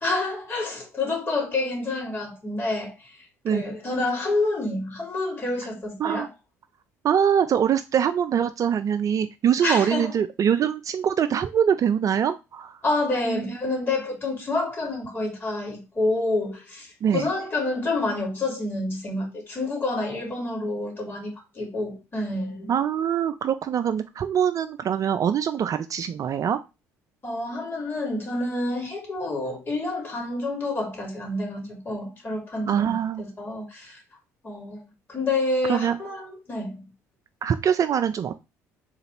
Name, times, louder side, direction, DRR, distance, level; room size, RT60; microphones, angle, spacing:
voice 1, 0.0-3.2 3.5-6.3 9.6-10.1 12.8-22.7 27.2-34.0 34.4-34.8 35.1-36.8, left 2 dB, 30° left, 2.6 m, -28 dB
voice 2, 7.0-12.8 13.3-13.5 17.0-17.3 22.7-26.6 32.7-33.2 35.7-36.0 37.4-38.3, right 8 dB, 45° right, 0.4 m, -23 dB
3.9 x 2.9 x 4.3 m
hypercardioid pair, 60°, 8 cm